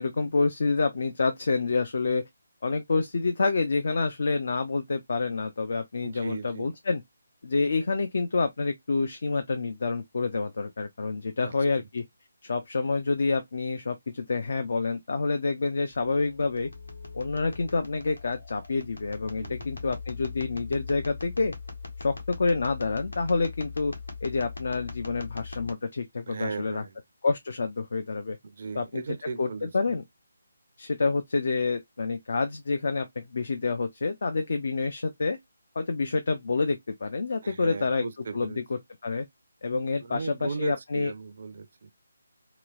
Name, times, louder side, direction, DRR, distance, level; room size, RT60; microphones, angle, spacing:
voice 1, 0.0-2.2 2.6-7.0 7.4-12.1 12.4-16.7 17.1-21.6 22.0-23.9 24.2-26.8 27.2-28.4 28.8-29.0 29.4-29.5 29.7-30.0 30.8-35.4 35.8-38.0 38.3-38.5 39.0-39.3 39.6-41.1, left 4 dB, 50° left, 0.5 m, -28 dB
voice 2, 6.0-6.7 11.4-11.9 19.4-19.6 26.3-27.0 28.4-30.0 37.4-38.6 40.0-41.9, right 4 dB, 45° right, 0.5 m, -37 dB
sound 1, 15.9-25.7, left 4 dB, 80° left, 1.3 m, -40 dB
3.0 x 2.9 x 2.4 m
figure-of-eight pair, 150°, 0 cm